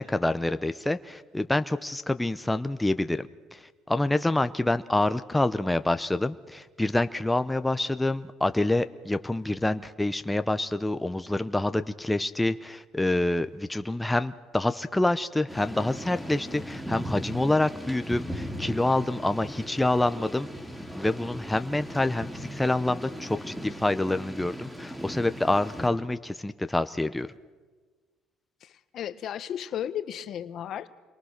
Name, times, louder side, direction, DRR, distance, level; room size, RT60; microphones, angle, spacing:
voice 1, 0.0-3.3 3.5-3.6 3.9-20.5 20.9-27.3, left 2 dB, 10° left, 10 dB, 0.8 m, -27 dB
Thunder / Rain, 15.5-25.9, equal, 5° right, 6.0 m, -38 dB
voice 2, 28.6-30.9, left 10 dB, 55° left, 12 dB, 1.2 m, -34 dB
28.5 x 22.5 x 6.6 m, 1.4 s
supercardioid pair, 95°, 0 cm